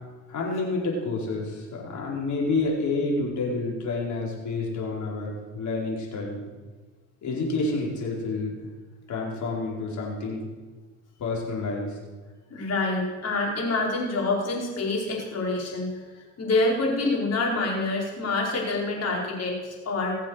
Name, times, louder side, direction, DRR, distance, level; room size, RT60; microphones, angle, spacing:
voice 1, 0.3-6.4 7.2-8.6 9.1-10.5 11.2-11.9, left 3 dB, 70° left, -2 dB, 4.8 m, -29 dB
voice 2, 12.5-20.2, left 2 dB, 55° left, -2 dB, 5.1 m, -27 dB
20.5 x 7.4 x 6.6 m, 1.4 s
cardioid pair, 90°, 30 cm